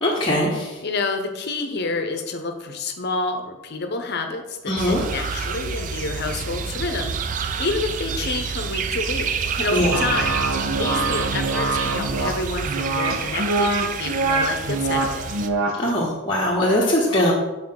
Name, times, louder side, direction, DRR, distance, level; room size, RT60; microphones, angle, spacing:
voice 1, 0.0-0.8 4.7-5.0 9.7-10.0 15.8-17.3, left 1 dB, 25° left, -6 dB, 0.8 m, -21 dB
voice 2, 0.8-7.1 7.6-9.3 9.6-10.4 10.7-13.7 14.0-15.3, left 3 dB, 55° left, 6 dB, 0.7 m, -28 dB
sound 1, 4.8-15.5, right 6 dB, 40° right, 0.3 m, -28 dB
sound 2, 9.9-15.9, right 3 dB, 80° right, 0.7 m, -24 dB
6.1 x 4.3 x 3.7 m, 1.1 s
head